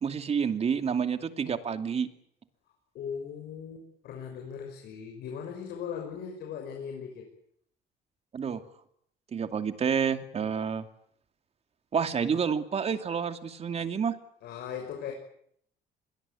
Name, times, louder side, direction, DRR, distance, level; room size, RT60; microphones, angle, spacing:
voice 1, 0.0-2.1 8.3-8.6 9.3-10.9 11.9-14.2, right 6 dB, 40° right, 8 dB, 2.6 m, -29 dB
voice 2, 2.9-7.3 14.4-15.1, left 7 dB, 70° left, 2 dB, 6.1 m, -38 dB
26.0 x 22.5 x 8.5 m, 0.69 s
cardioid pair, 110°, 17 cm